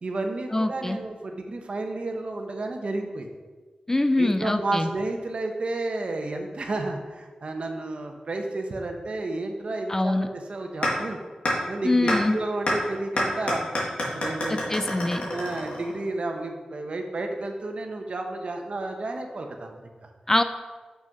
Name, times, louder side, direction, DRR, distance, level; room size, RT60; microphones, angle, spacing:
voice 1, 0.0-3.3 4.2-11.2 11.7-13.6 14.0-14.6 14.9-20.1, right 2 dB, 55° right, 4 dB, 1.0 m, -31 dB
voice 2, 0.5-1.0 3.9-4.9 9.9-10.3 11.8-12.4 14.5-15.2 20.3-20.4, left 2 dB, 20° left, 8 dB, 0.4 m, -24 dB
sound 1, 10.8-10.9 11.4-11.5 12.1-12.2 12.7-12.8 13.2-16.1, left 1 dB, 60° left, 2.2 m, -26 dB
6.2 x 6.1 x 5.3 m, 1.4 s
wide cardioid pair, 100°, 2 cm